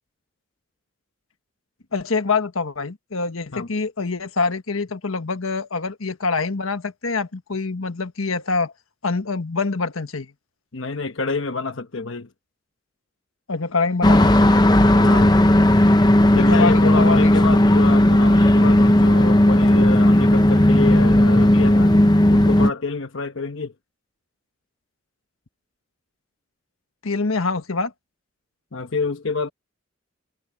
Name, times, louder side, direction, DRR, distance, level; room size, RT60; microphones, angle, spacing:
voice 1, 1.9-8.7 9.0-10.3 13.5-14.5 16.3-17.5 27.0-27.9, left 4 dB, 90° left, 1.3 m, -25 dB
voice 2, 10.7-12.3 14.9-15.4 16.3-22.0 22.3-23.7 28.7-29.5, left 4 dB, 70° left, 1.1 m, -28 dB
sound 1, 14.0-22.7, left 1 dB, 20° left, 0.8 m, -15 dB
head